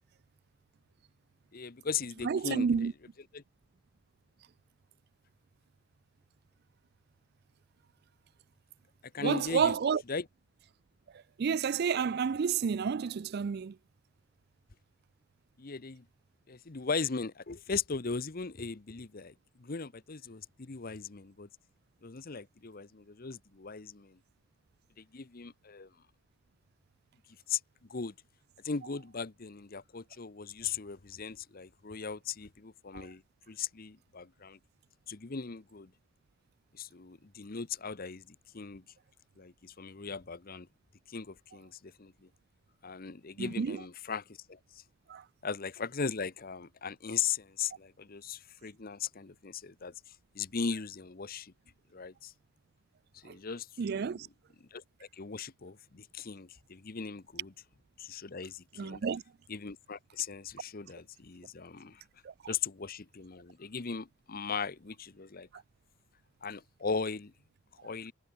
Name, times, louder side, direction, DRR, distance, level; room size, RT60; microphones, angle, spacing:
voice 1, 1.5-2.7 3.3-3.4 9.1-9.7 10.1-10.2 15.6-16.0 16.5-19.3 19.6-21.5 22.0-24.2 25.0-25.9 27.5-27.6 27.9-28.1 28.6-33.2 33.5-34.6 35.1-35.9 36.7-38.2 38.5-38.8 39.4-40.7 41.1-42.1 42.8-44.6 45.4-49.9 50.3-51.5 51.9-52.3 53.1-54.1 54.7-54.8 55.1-57.5 58.0-59.0 59.5-62.0 62.5-65.5 66.4-67.3 67.8-68.1, left 5 dB, 45° left, 0.8 m, -38 dB
voice 2, 2.2-2.9 9.2-10.0 11.4-13.8 32.9-33.1 43.4-43.8 45.1-45.2 53.3-53.4 53.8-54.3 58.8-59.2 62.2-62.5, right 6 dB, 50° right, 0.4 m, -30 dB
head